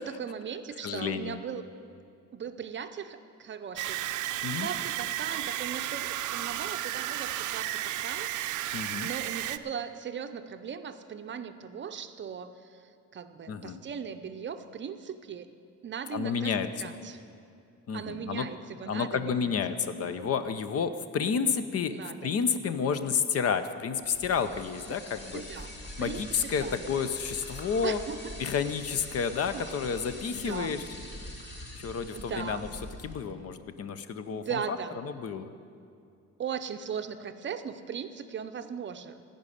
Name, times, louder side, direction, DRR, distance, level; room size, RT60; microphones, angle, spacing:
voice 1, 0.0-1.7 2.3-4.0 4.6-15.5 15.8-16.5 16.8-17.2 17.9-19.4 21.9-22.4 25.3-25.7 26.0-26.9 27.8-28.4 29.5-29.6 30.2-30.9 32.1-32.7 34.3-35.0 36.4-39.2, right 7 dB, 40° right, 9 dB, 0.6 m, -38 dB
voice 2, 0.8-1.4 4.4-4.7 8.7-9.1 13.5-13.8 16.1-16.9 17.9-18.5 18.9-21.9 22.2-25.4 26.0-28.0 28.4-30.8 31.8-32.7 33.0-34.8 35.0-35.5, left 6 dB, 55° left, 11 dB, 0.7 m, -30 dB
sound 1, 3.8-9.6, right 13 dB, 85° right, 0.5 m, -33 dB
sound 2, 24.0-33.1, left 1 dB, 35° left, 2.1 m, -44 dB
15.5 x 5.4 x 9.9 m, 2.4 s
cardioid pair, 145°, 29 cm